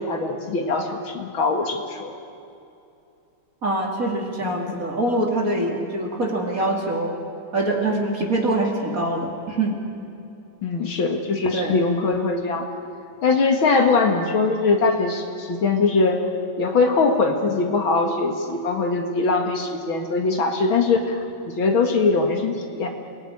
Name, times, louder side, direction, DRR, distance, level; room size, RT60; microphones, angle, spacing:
voice 1, 0.0-2.1 4.4-4.7 10.6-12.7 13.2-16.3 16.6-22.9, left 3 dB, 75° left, 3 dB, 2.6 m, -22 dB
voice 2, 3.6-7.1 7.5-9.8 11.5-11.8, right 2 dB, 40° right, 1 dB, 3.1 m, -24 dB
27.5 x 18.5 x 9.9 m, 2.7 s
omnidirectional pair, 2.2 m